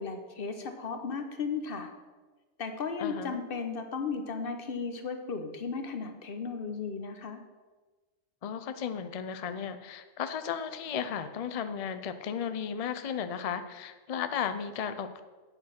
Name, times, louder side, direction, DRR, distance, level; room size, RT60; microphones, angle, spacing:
voice 1, 0.0-1.9 2.6-7.4, left 5 dB, 50° left, 7 dB, 1.0 m, -35 dB
voice 2, 3.0-3.4 8.4-15.2, left 7 dB, 75° left, 10 dB, 0.3 m, -35 dB
8.7 x 6.7 x 5.8 m, 1.3 s
omnidirectional pair, 1.4 m